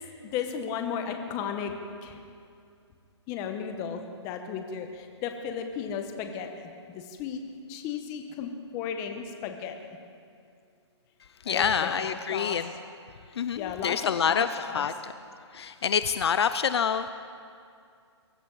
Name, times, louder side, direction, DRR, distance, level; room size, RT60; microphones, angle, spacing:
voice 1, 0.3-1.7 2.0-2.2 3.3-6.5 7.2-7.4 7.7-9.7 11.5-12.6 13.5-13.9 14.3-14.9, left 7 dB, 20° left, 5 dB, 1.2 m, -34 dB
voice 2, 11.5-12.7 13.4-15.1 15.5-17.1, left 7 dB, 65° left, 12 dB, 0.6 m, -27 dB
23.0 x 13.0 x 4.1 m, 2.4 s
hypercardioid pair, 155°, 15 cm